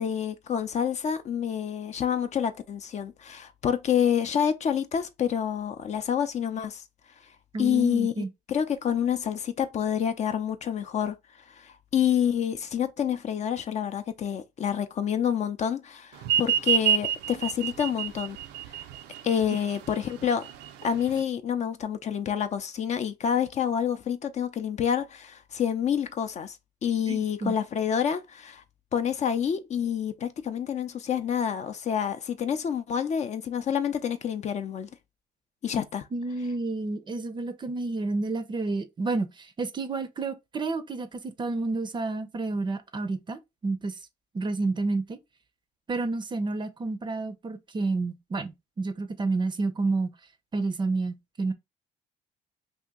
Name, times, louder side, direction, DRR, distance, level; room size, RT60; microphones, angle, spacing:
voice 1, 0.0-6.8 7.6-8.1 8.5-11.2 11.6-18.4 19.2-20.5 20.8-26.6 26.8-28.6 28.9-34.9 35.6-36.1, left 8 dB, 40° left, 0.5 m, -28 dB
voice 2, 7.5-8.3 27.1-27.5 36.1-44.0 44.3-45.2 45.9-50.1 50.5-51.5, right 3 dB, 25° right, 0.5 m, -30 dB
sound 1, 16.2-21.2, right 10 dB, 85° right, 0.5 m, -28 dB
2.8 x 2.6 x 3.6 m
cardioid pair, 110°, 17 cm